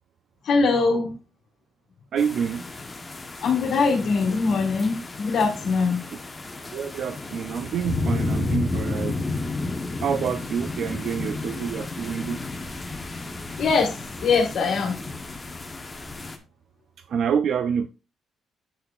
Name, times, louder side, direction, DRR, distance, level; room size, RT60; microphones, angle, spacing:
voice 1, 0.4-1.1 3.4-6.0 13.6-15.0, left 4 dB, 70° left, 1.6 m, -22 dB
voice 2, 2.1-2.6 6.7-9.2 10.0-12.4 17.1-17.9, right 7 dB, 65° right, 0.4 m, -27 dB
sound 1, 2.2-16.4, left 3 dB, 20° left, 1.0 m, -32 dB
7.8 x 6.6 x 2.4 m
cardioid pair, 90°, 0 cm